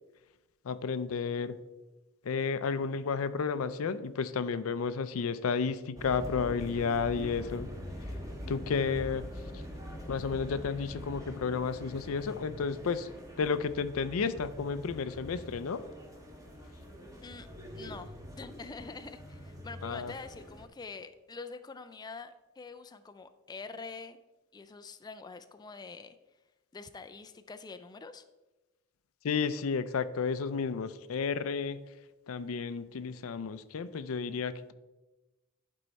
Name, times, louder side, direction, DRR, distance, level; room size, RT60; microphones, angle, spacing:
voice 1, 0.6-1.6 2.2-7.7 8.0-8.1 8.5-9.6 10.1-13.1 13.4-15.8 19.8-20.1 29.2-31.8 32.3-34.7, left 5 dB, 85° left, 14 dB, 0.5 m, -32 dB
sound 1, 6.0-20.7, equal, 15° right, 1.3 m, -44 dB
voice 2, 17.7-24.2 24.5-26.2 26.7-28.2, left 4 dB, 20° left, 9 dB, 0.3 m, -45 dB
11.0 x 4.6 x 4.1 m, 1.1 s
head